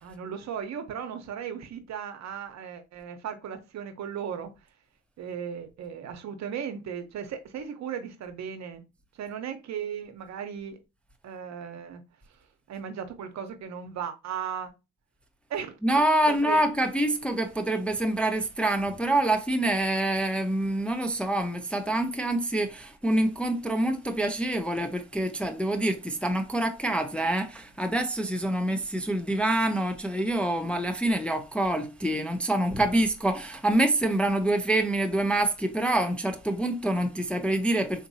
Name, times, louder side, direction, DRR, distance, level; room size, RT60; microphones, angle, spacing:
voice 1, 0.0-4.5 5.2-8.8 9.1-10.8 11.2-12.0 12.3-14.7 15.5-15.8 16.3-16.6, right 8 dB, 65° right, 0.8 m, -36 dB
voice 2, 15.8-38.1, right 1 dB, 5° left, 0.4 m, -26 dB
3.9 x 2.6 x 2.7 m
cardioid pair, 90°, 30 cm